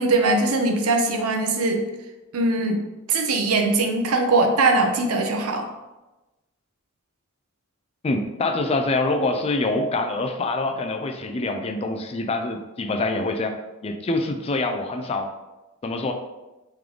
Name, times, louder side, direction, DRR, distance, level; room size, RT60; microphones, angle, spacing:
voice 1, 0.0-1.8 2.3-2.8 3.1-5.7, right 2 dB, 85° right, 4 dB, 0.6 m, -21 dB
voice 2, 8.0-15.3 15.8-16.1, left 2 dB, 30° left, 6 dB, 0.3 m, -25 dB
3.3 x 3.0 x 3.8 m, 1.1 s
head